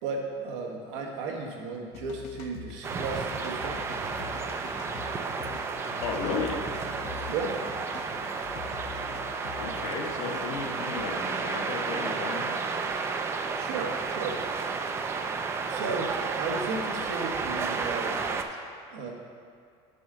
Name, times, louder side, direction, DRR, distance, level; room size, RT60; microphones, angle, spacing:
voice 1, 0.0-4.3 7.3-7.6 13.3-14.7 15.7-18.2 18.9-19.1, right 4 dB, 85° right, 1 dB, 1.2 m, -35 dB
sound 1, 1.9-11.1, left 7 dB, 50° left, 0.6 m, -44 dB
sound 2, 2.8-18.4, right 4 dB, 20° right, 0.3 m, -32 dB
voice 2, 6.0-6.6 9.6-12.5, left 5 dB, 65° left, 2 dB, 1.0 m, -34 dB
8.3 x 3.7 x 6.6 m, 2.2 s
cardioid pair, 160°, 14 cm